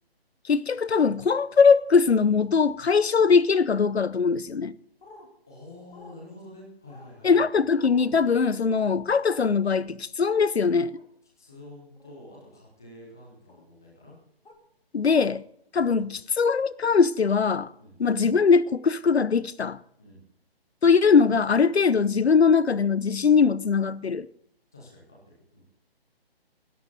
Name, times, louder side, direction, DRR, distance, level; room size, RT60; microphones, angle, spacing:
voice 1, 0.5-4.7 7.2-11.0 14.9-15.4 15.7-17.7 18.0-19.8 20.8-24.3, left 5 dB, 85° left, 0.8 m, -21 dB
sound 1, 5.0-5.3 5.9-6.2 6.9-7.1 7.7-8.1 8.7-8.9 10.9-11.1 12.0-12.2 13.5-13.6 14.5-14.6, left 3 dB, 60° left, 3.2 m, -50 dB
voice 2, 5.5-7.3 11.4-14.2 15.0-15.2 17.8-18.0 20.0-20.2 24.7-25.6, left 1 dB, 5° left, 0.4 m, -48 dB
19.5 x 11.5 x 4.0 m
figure-of-eight pair, 150°, 31 cm